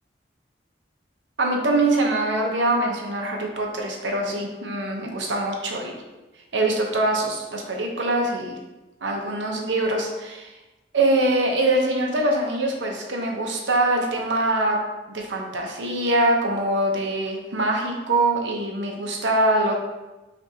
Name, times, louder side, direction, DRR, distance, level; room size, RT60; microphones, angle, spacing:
voice 1, 1.4-6.0 6.5-8.6 9.0-10.5 10.9-14.8 15.1-19.7, right 2 dB, 80° right, 1 dB, 0.8 m, -23 dB
5.9 x 2.5 x 2.8 m, 1.1 s
head